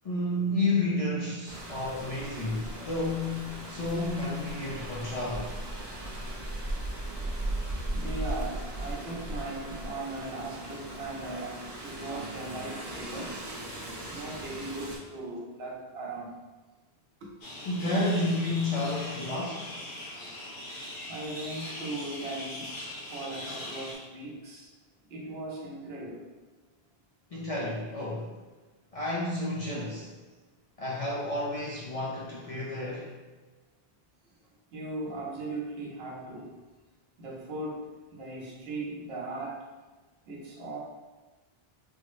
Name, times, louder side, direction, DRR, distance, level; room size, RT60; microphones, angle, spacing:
voice 1, 0.0-5.6 17.6-19.8 27.3-28.4 28.9-30.1 30.8-33.1, left 2 dB, 50° left, -5 dB, 0.4 m, -31 dB
Rain, 1.5-15.0, right 1 dB, 30° right, 0.5 m, -37 dB
voice 2, 7.9-13.4 14.1-16.3 17.2-17.3 21.1-22.7 23.1-24.7 25.1-26.3 34.7-36.5 37.2-39.6 40.3-40.8, right 2 dB, 75° right, -1 dB, 0.9 m, -38 dB
sound 1, 17.4-24.0, left 1 dB, 65° left, 1.0 m, -41 dB
3.9 x 2.0 x 2.9 m, 1.3 s
omnidirectional pair, 1.1 m